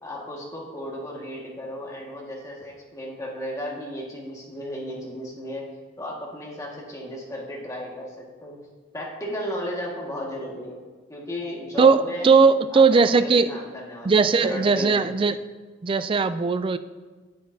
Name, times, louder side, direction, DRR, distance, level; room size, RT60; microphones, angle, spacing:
voice 1, 0.0-5.6 6.0-8.6 8.9-10.8 11.1-12.3 12.7-15.1, equal, 15° left, -3 dB, 1.6 m, -35 dB
voice 2, 11.8-13.5 14.0-15.4 15.8-16.8, right 4 dB, 25° right, 12 dB, 0.3 m, -18 dB
10.0 x 8.9 x 2.7 m, 1.3 s
head